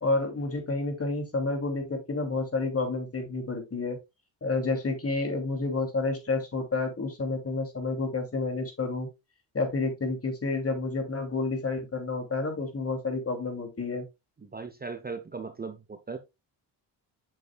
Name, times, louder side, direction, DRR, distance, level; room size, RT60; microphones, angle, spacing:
voice 1, 0.0-4.0 4.4-9.1 9.5-14.1, left 3 dB, 30° left, 2.8 m, -30 dB
voice 2, 14.4-16.2, right 4 dB, 20° right, 0.9 m, -38 dB
8.3 x 6.4 x 2.3 m
cardioid pair, 75°, 46 cm